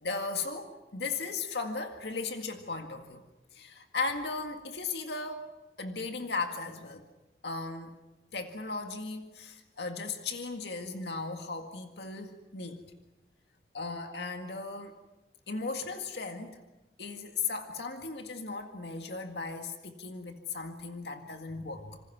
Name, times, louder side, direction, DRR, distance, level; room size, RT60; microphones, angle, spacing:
voice 1, 0.0-3.2 3.5-5.4 5.8-7.0 7.4-7.9 8.3-12.8 13.7-14.9 15.5-16.6 17.0-22.0, left 4 dB, 75° left, 4 dB, 2.0 m, -36 dB
27.0 x 26.5 x 6.0 m, 1.0 s
head